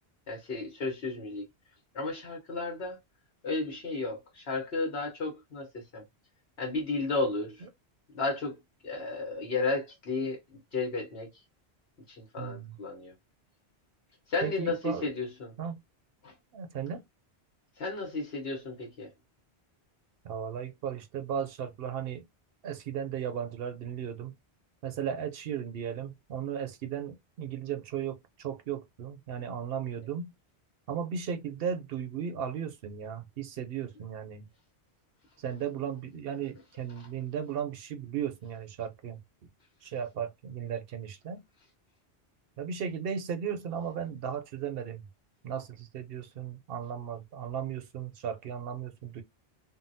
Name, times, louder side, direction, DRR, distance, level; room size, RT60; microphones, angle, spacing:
voice 1, 0.3-1.5 1.9-3.0 3.4-6.0 6.6-7.6 8.1-8.6 8.8-11.3 12.2-13.1 14.3-15.5 16.2-16.3 17.8-19.1, left 3 dB, 70° left, 1.2 m, -33 dB
voice 2, 12.4-12.8 14.4-15.1 15.6-15.8 16.5-17.0 20.2-22.2 22.6-24.3 24.8-30.3 30.9-34.5 35.4-39.2 39.8-41.4 42.6-45.1 45.4-49.2, right 8 dB, 65° right, 0.8 m, -36 dB
3.8 x 2.0 x 2.6 m
omnidirectional pair, 1.1 m